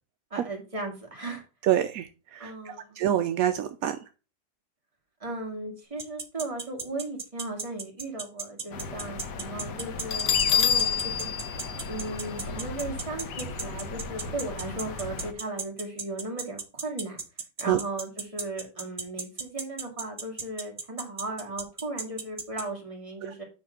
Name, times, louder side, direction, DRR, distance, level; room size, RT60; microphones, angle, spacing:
voice 1, 0.3-1.4 2.4-3.0 5.2-11.3 11.9-17.2 17.6-23.4, right 2 dB, 20° right, 0 dB, 2.1 m, -36 dB
voice 2, 1.6-4.0 17.7-17.8, right 11 dB, 75° right, 10 dB, 0.8 m, -26 dB
sound 1, 6.0-22.6, right 4 dB, 40° right, 0.4 m, -34 dB
sound 2, 8.7-15.3, left 4 dB, 65° left, 1.5 m, -37 dB
Bell, 10.1-12.8, left 8 dB, 85° left, 1.5 m, -27 dB
9.0 x 3.3 x 5.8 m, 0.33 s
omnidirectional pair, 2.0 m